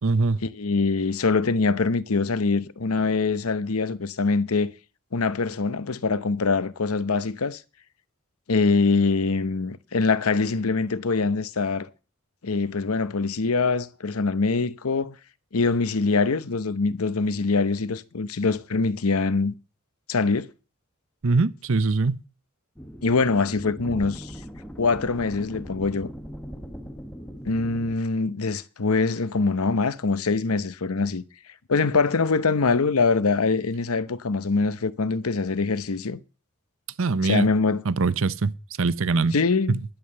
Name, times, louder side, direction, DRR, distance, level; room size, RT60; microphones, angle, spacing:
voice 1, 0.0-0.4 21.2-22.2 37.0-37.5 37.8-38.5 38.8-39.3 39.7-39.8, right 3 dB, 65° right, 0.7 m, -22 dB
voice 2, 0.5-4.7 5.1-7.6 8.5-11.9 12.4-15.2 15.5-19.5 20.1-20.5 23.0-24.3 24.8-26.1 27.4-31.2 31.7-36.2 37.2-37.8 39.3-39.8, left 4 dB, 85° left, 0.8 m, -23 dB
sound 1, 22.8-28.0, equal, 5° left, 1.2 m, -40 dB
11.5 x 9.0 x 6.8 m
head